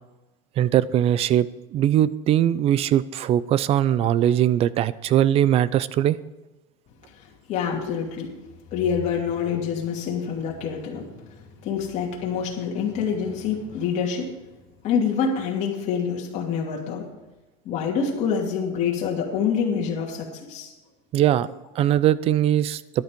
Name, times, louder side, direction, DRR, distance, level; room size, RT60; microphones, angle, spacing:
voice 1, 0.6-1.5 1.7-6.2 21.1-21.5 21.8-22.8, right 11 dB, 35° right, 18 dB, 0.5 m, -20 dB
voice 2, 7.5-8.4 8.7-11.1 11.6-14.3 14.8-17.1 17.6-20.7, left 6 dB, 45° left, -2 dB, 2.7 m, -26 dB
13.0 x 11.0 x 5.3 m, 1.1 s
supercardioid pair, 135°, 17 cm